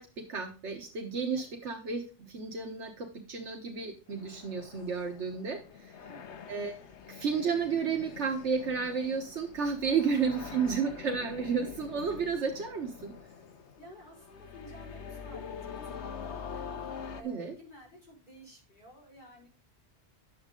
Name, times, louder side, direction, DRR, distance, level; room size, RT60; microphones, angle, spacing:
voice 1, 0.0-5.6 6.5-6.7 7.1-13.1 17.2-17.5, right 5 dB, 80° right, 2 dB, 1.5 m, -32 dB
sound 1, 4.1-17.2, left 6 dB, 75° left, 1.2 m, -45 dB
voice 2, 6.0-6.5 10.1-10.9 13.8-15.5 15.8-19.5, equal, 45° left, -3 dB, 5.4 m, -53 dB
11.0 x 7.3 x 3.8 m, 0.35 s
omnidirectional pair, 1.2 m